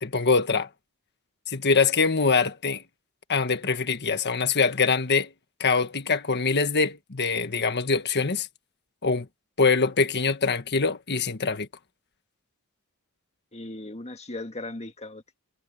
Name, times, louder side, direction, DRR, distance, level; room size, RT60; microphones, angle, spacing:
voice 1, 0.0-0.7 1.5-2.8 3.3-5.3 5.6-8.5 9.0-9.3 9.6-11.7, left 4 dB, 50° left, 1.5 m, -24 dB
voice 2, 13.5-15.4, left 2 dB, 30° left, 1.7 m, -38 dB
head